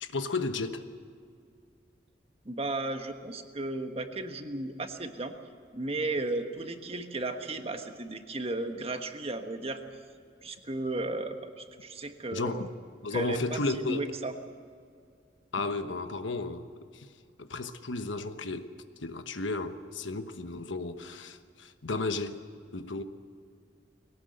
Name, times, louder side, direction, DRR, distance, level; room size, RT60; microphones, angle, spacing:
voice 1, 0.0-0.8 12.3-12.7 13.0-14.1 15.5-16.7 16.9-17.1 17.4-18.7 19.0-22.4 22.7-23.0, left 3 dB, 85° left, 1.2 m, -33 dB
voice 2, 2.4-5.4 5.7-9.8 10.4-12.7 13.1-14.3, right 2 dB, 30° right, 1.4 m, -34 dB
22.0 x 18.0 x 8.0 m
head